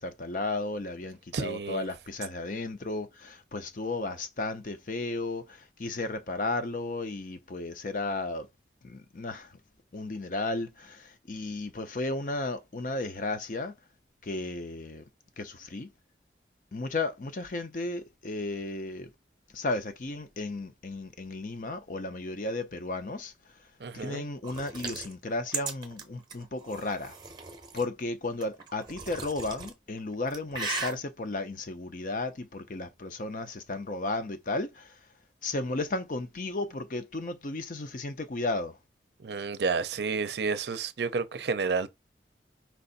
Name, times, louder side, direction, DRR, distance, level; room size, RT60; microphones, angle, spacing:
voice 1, 0.0-8.5 8.8-9.5 9.9-13.7 14.2-15.0 15.4-15.9 16.7-19.1 19.5-23.3 23.9-27.2 27.7-35.0 35.4-38.8, left 2 dB, 45° left, 0.6 m, -34 dB
voice 2, 1.3-1.9 23.8-24.2 39.2-41.9, right 4 dB, 70° right, 0.5 m, -30 dB
weird blood drinking, 24.4-27.9 28.4-29.7 30.1-30.9, right 4 dB, 25° right, 0.8 m, -37 dB
4.5 x 2.5 x 4.0 m
head